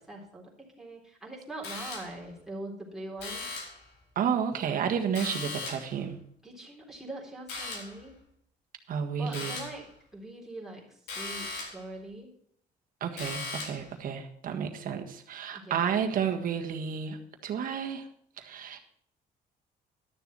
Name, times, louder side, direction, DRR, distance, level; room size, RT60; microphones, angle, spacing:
voice 1, 0.0-3.4 6.4-8.2 9.2-9.9 10.1-12.3 15.5-15.9, right 2 dB, 5° right, -3 dB, 3.7 m, -42 dB
sound 1, 1.6-2.3 3.2-3.9 5.1-6.0 7.5-8.0 9.3-9.8 11.1-11.9 13.2-13.9, left 3 dB, 80° left, 3.7 m, -38 dB
voice 2, 4.1-6.2 8.9-9.6 13.0-17.2 17.4-18.0 18.4-18.8, right 7 dB, 55° right, 4 dB, 1.7 m, -31 dB
12.0 x 7.0 x 6.2 m, 0.67 s
cardioid pair, 110°, 17 cm